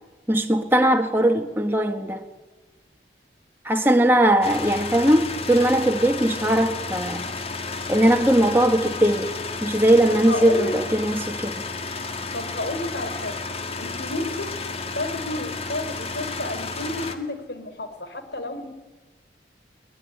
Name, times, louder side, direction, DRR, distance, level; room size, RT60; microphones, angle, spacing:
voice 1, 0.3-2.3 3.6-7.3 7.9-9.4 9.6-11.6, right 1 dB, 10° right, 1.5 m, -20 dB
sound 1, 4.4-17.2, left 3 dB, 35° left, 2.3 m, -32 dB
voice 2, 10.1-10.8 12.3-13.4 13.8-14.6 14.9-18.7, left 1 dB, 75° left, 4.1 m, -31 dB
22.5 x 20.0 x 9.7 m
head